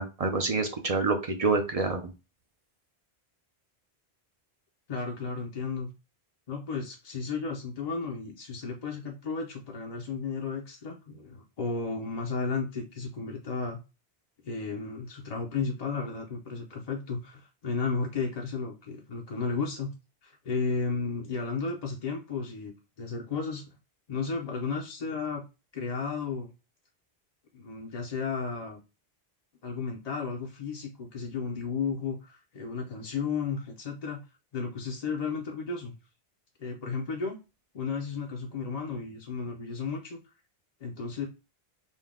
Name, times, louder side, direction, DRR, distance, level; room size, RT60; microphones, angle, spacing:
voice 1, 0.0-2.1, right 3 dB, 45° right, 4 dB, 0.6 m, -27 dB
voice 2, 4.9-5.9 6.5-13.8 14.4-19.9 20.2-23.7 24.1-25.4 25.7-26.5 27.5-28.8 29.6-34.2 34.5-35.9 36.6-37.4 37.7-40.2 40.8-41.3, left 5 dB, 45° left, 0 dB, 0.6 m, -33 dB
5.3 x 2.2 x 3.6 m, 0.29 s
omnidirectional pair, 1.1 m